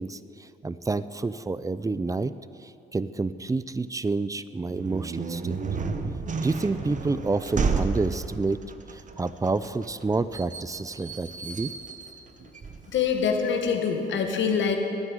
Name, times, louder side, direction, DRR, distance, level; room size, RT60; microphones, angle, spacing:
voice 1, 0.0-2.3 2.6-5.6 6.4-8.6 8.9-11.7, right 3 dB, 15° right, 15 dB, 0.5 m, -29 dB
sound 1, 4.7-13.3, right 4 dB, 40° right, 1.2 m, -32 dB
voice 2, 12.9-14.8, left 6 dB, 70° left, 4 dB, 1.9 m, -24 dB
12.5 x 9.8 x 9.8 m, 2.6 s
cardioid pair, 90°, 20 cm